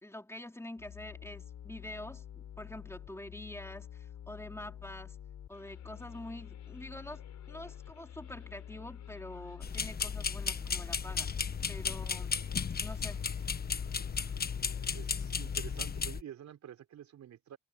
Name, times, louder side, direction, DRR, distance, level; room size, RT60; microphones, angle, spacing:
voice 1, 0.0-5.2 5.5-11.3 11.7-12.4 12.8-13.3, left 1 dB, 10° left, 4.4 m, -46 dB
sound 1, 0.8-16.1, left 9 dB, 65° left, 5.4 m, -46 dB
sound 2, 9.6-16.2, left 5 dB, 30° left, 1.2 m, -35 dB
voice 2, 14.9-17.6, right 10 dB, 65° right, 4.9 m, -48 dB
cardioid pair, 90°, 30 cm